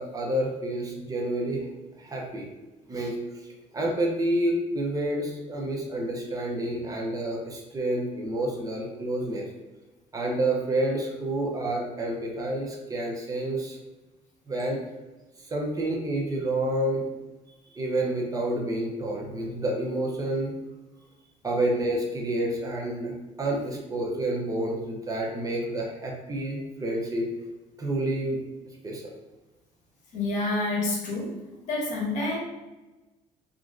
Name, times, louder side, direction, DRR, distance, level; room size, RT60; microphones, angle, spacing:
voice 1, 0.0-1.7 2.0-2.5 2.9-3.2 3.7-9.5 10.1-13.8 14.5-14.8 15.5-17.1 17.7-20.5 21.4-23.1 23.4-27.3 27.8-28.4 28.8-29.1, right 1 dB, 25° right, -1 dB, 0.7 m, -29 dB
voice 2, 30.1-31.3 31.7-32.4, left 2 dB, 65° left, -2 dB, 0.9 m, -28 dB
3.0 x 2.5 x 2.5 m, 1.1 s
cardioid pair, 105°, 14 cm